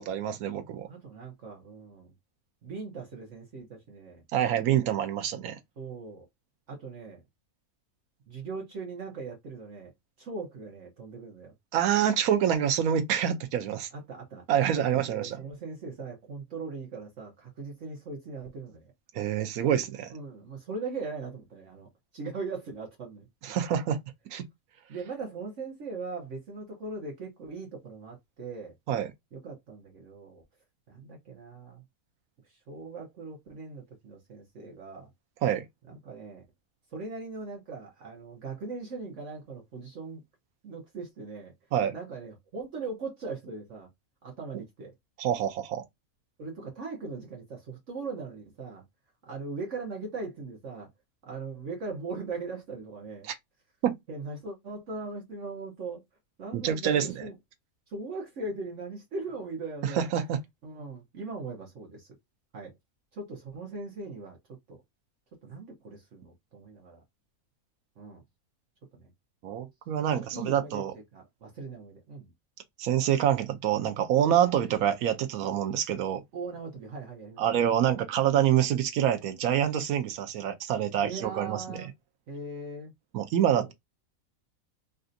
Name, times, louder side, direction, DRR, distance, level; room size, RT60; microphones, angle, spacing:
voice 1, 0.0-0.9 4.3-5.6 11.7-13.9 14.5-15.4 19.1-20.1 23.4-24.0 24.3-24.4 28.9-29.1 35.4-35.7 41.7-41.9 45.2-45.8 53.2-53.3 53.8-54.0 56.5-57.2 59.8-60.4 69.4-70.9 72.8-76.2 77.4-81.8 83.1-83.7, right 10 dB, 85° right, 1.1 m, -26 dB
voice 2, 0.9-2.1 2.6-4.2 5.8-6.2 6.7-7.2 8.3-9.9 10.2-11.5 13.9-14.4 14.7-18.9 20.1-23.6 24.9-28.8 29.3-30.4 30.9-31.8 32.4-35.1 35.9-36.4 36.9-40.2 40.6-41.5 41.9-43.9 44.2-44.9 46.4-48.8 49.2-50.9 51.2-53.3 54.1-56.0 56.4-57.3 57.9-60.1 60.6-62.2 62.5-62.7 63.1-64.4 64.7-64.8 65.4-67.0 68.0-68.2 68.9-69.1 70.1-70.8 71.1-72.3 76.3-77.6 81.0-81.9 82.3-82.9 83.5-83.7, right 3 dB, 60° right, 1.2 m, -40 dB
3.3 x 2.6 x 2.5 m
omnidirectional pair, 1.5 m